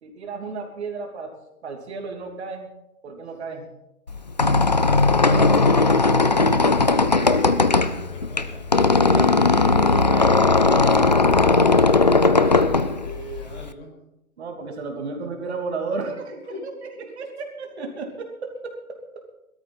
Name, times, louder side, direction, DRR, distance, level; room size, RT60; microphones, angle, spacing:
voice 1, 0.0-1.3 1.6-2.7 3.0-3.7 9.0-9.4 9.7-10.4 14.4-16.4 17.0-19.2, right 4 dB, 45° right, 2 dB, 2.9 m, -33 dB
Squeak, 4.1-13.7, left 3 dB, 35° left, 0.4 m, -18 dB
voice 2, 8.1-8.7 12.4-14.0 16.5-16.7, left 1 dB, 50° left, 2 dB, 5.8 m, -41 dB
19.5 x 13.0 x 4.1 m, 0.92 s
hypercardioid pair, 150°, 43 cm